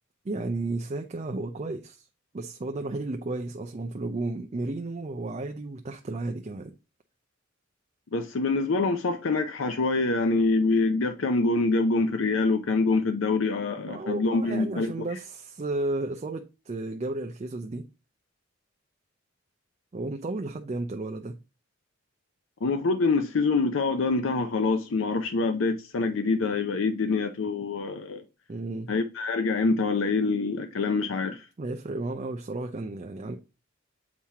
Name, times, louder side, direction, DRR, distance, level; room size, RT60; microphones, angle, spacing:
voice 1, 0.2-2.0 2.3-6.7 13.9-17.9 19.9-21.4 28.5-28.9 31.6-33.3, right 2 dB, 35° right, 0.4 m, -33 dB
voice 2, 8.1-15.1 22.6-28.2 28.9-31.5, left 3 dB, 70° left, 0.5 m, -25 dB
7.3 x 2.8 x 4.7 m
head